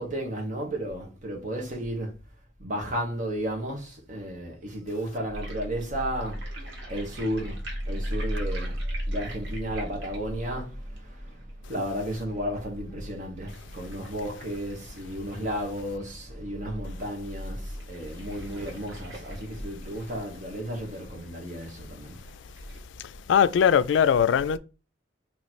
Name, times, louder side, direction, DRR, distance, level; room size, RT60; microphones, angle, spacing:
voice 1, 0.0-2.1 2.6-8.8 9.1-22.2, equal, 45° right, 1.3 m, -33 dB
sound 1, 5.3-16.3 16.7-16.8 17.0-17.1 17.7-22.8, equal, 85° right, 1.4 m, -37 dB
voice 2, 23.3-24.6, left 8 dB, 90° left, 0.3 m, -20 dB
3.1 x 3.0 x 4.2 m
head